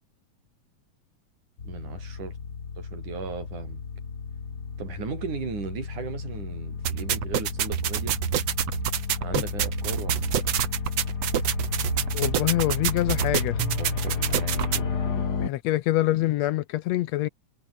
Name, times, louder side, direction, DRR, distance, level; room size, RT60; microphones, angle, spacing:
sound 1, 1.6-15.5, left 5 dB, 35° left, 2.4 m, -32 dB
voice 1, 1.6-2.4 2.8-3.8 4.8-8.2 9.2-10.5 13.8-14.9, right 6 dB, 90° right, 5.5 m, -37 dB
sound 2, 6.8-14.8, right 11 dB, 60° right, 2.4 m, -28 dB
voice 2, 12.1-13.6 15.1-17.3, left 15 dB, 75° left, 1.7 m, -25 dB
omnidirectional pair, 3.4 m